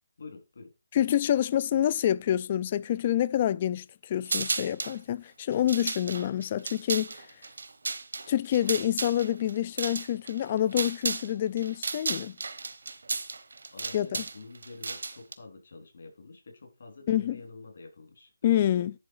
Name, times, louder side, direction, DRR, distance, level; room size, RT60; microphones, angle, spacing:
voice 1, 0.2-0.7 13.7-18.9, left 3 dB, 60° left, 3.6 m, -47 dB
voice 2, 0.9-7.1 8.3-12.4 13.9-14.2 17.1-17.4 18.4-18.9, left 11 dB, 30° left, 0.4 m, -27 dB
sound 1, 4.3-5.0 5.5-11.3 11.6-15.3, right 4 dB, 75° right, 1.1 m, -34 dB
10.5 x 3.8 x 4.8 m
hypercardioid pair, 165°, 0 cm